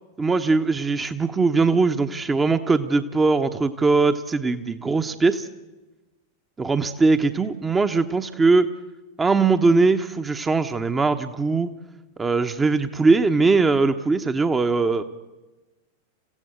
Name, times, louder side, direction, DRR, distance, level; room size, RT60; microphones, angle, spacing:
voice 1, 0.2-5.5 6.6-8.7 9.2-11.7 12.2-15.0, right 3 dB, 15° right, 8 dB, 1.0 m, -20 dB
28.5 x 16.0 x 8.1 m, 1.1 s
figure-of-eight pair, 90°, 0 cm